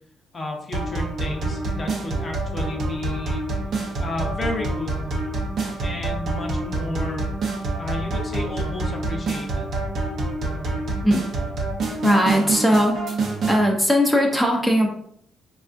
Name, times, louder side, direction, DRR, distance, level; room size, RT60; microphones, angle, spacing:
voice 1, 0.3-3.4 4.0-5.1 5.8-7.3 7.8-9.7, left 2 dB, 40° left, 1 dB, 0.7 m, -32 dB
sound 1, 0.7-13.6, right 2 dB, 65° right, 0.7 m, -27 dB
voice 2, 12.0-13.2 13.5-14.9, equal, 5° right, 0 dB, 0.5 m, -19 dB
3.5 x 2.3 x 2.5 m, 0.67 s
cardioid pair, 90°, 0 cm